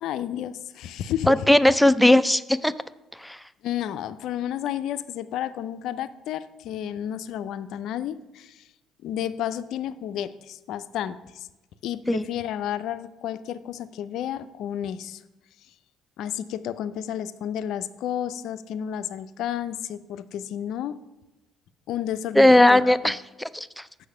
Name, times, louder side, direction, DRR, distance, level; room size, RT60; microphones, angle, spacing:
voice 1, 0.0-1.3 3.6-8.6 9.0-11.5 11.8-15.2 16.2-21.0 21.9-23.1 24.0-24.1, left 10 dB, 65° left, 13 dB, 0.4 m, -31 dB
voice 2, 1.3-2.7 3.2-3.4 12.1-12.2 22.4-23.8, left 1 dB, ahead, 13 dB, 0.4 m, -18 dB
6.4 x 5.5 x 6.8 m, 1.0 s
hypercardioid pair, 60°, 0 cm